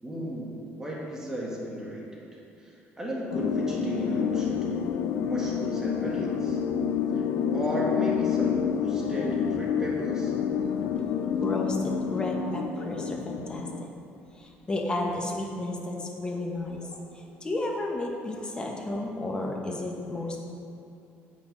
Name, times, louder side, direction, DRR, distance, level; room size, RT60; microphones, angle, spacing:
voice 1, 0.0-4.9 5.2-6.6 7.1-7.2 7.5-10.3, equal, 10° right, -4 dB, 1.7 m, -35 dB
sound 1, 3.3-13.9, left 7 dB, 80° left, 0.5 m, -28 dB
voice 2, 11.4-13.9 14.3-20.4, left 2 dB, 20° left, 0 dB, 1.2 m, -32 dB
8.3 x 6.2 x 5.3 m, 2.7 s
cardioid pair, 125°, 5 cm